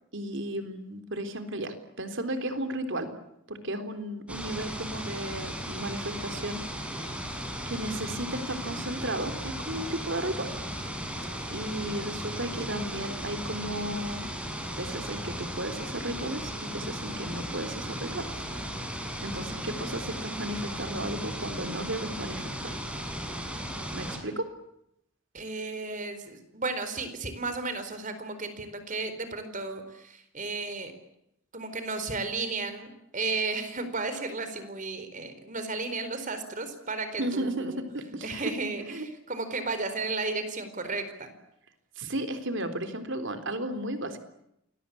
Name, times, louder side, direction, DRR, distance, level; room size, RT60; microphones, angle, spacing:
voice 1, 0.1-3.1 3.5-7.2 7.7-10.5 11.5-14.2 14.8-18.3 19.0-22.8 23.9-24.5 37.2-38.5 38.9-39.1 42.0-44.2, right 1 dB, 60° right, 8 dB, 3.7 m, -34 dB
sound 1, 4.3-24.2, equal, 5° right, 6.9 m, -36 dB
voice 2, 25.3-30.9 31.5-37.8 38.2-41.3, right 3 dB, 40° right, 10 dB, 4.4 m, -34 dB
28.5 x 22.0 x 8.6 m, 0.79 s
head